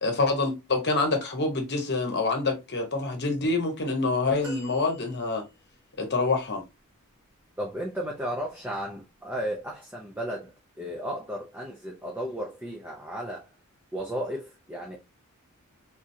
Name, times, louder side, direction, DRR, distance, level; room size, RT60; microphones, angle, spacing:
voice 1, 0.0-5.4 6.0-6.6, left 3 dB, 50° left, 1.0 m, -26 dB
sound 1, 4.4-5.8 6.6-6.7, equal, 60° right, 1.6 m, -45 dB
voice 2, 7.6-13.5 13.9-15.0, equal, 10° right, 0.6 m, -34 dB
3.7 x 3.0 x 2.7 m
head